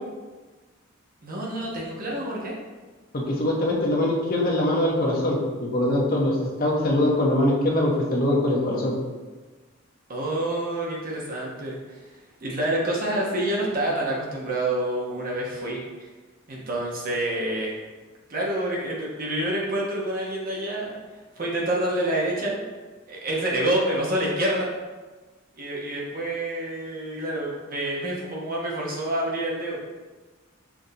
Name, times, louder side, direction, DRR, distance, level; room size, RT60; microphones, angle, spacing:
voice 1, 1.2-2.5 10.1-12.1 12.4-16.1 16.5-17.7 18.3-21.0 21.4-22.7 23.1-24.7 25.6-29.8, right 1 dB, 45° right, -3 dB, 0.7 m, -27 dB
voice 2, 3.1-8.9, left 1 dB, 45° left, -2 dB, 0.8 m, -23 dB
5.9 x 2.6 x 2.7 m, 1.3 s
head